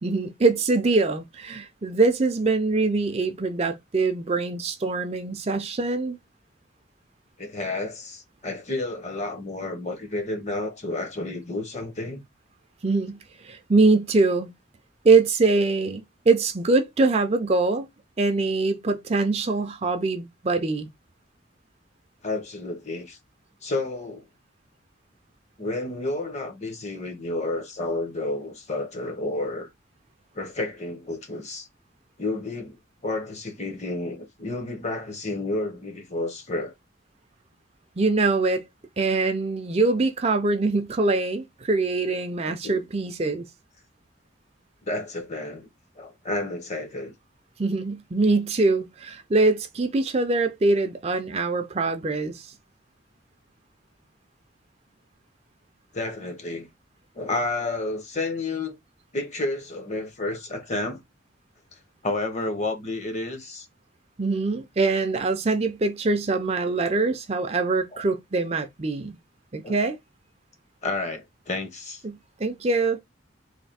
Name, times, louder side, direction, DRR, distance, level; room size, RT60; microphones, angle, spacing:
voice 1, 0.0-6.2 12.8-14.5 15.0-17.9 18.2-20.9 38.0-38.6 39.0-43.4 47.6-52.5 64.2-69.2 69.5-70.0 72.0-73.0, right 3 dB, 30° right, 0.4 m, -23 dB
voice 2, 7.4-12.2 22.2-23.2 23.6-24.2 25.6-29.7 30.3-31.7 32.2-36.7 42.5-42.8 44.8-45.7 46.0-47.1 55.9-56.7 57.1-58.8 59.1-61.0 61.7-63.7 67.9-68.0 69.6-69.8 70.8-72.0, left 2 dB, 35° left, 0.8 m, -31 dB
3.3 x 2.7 x 4.0 m
head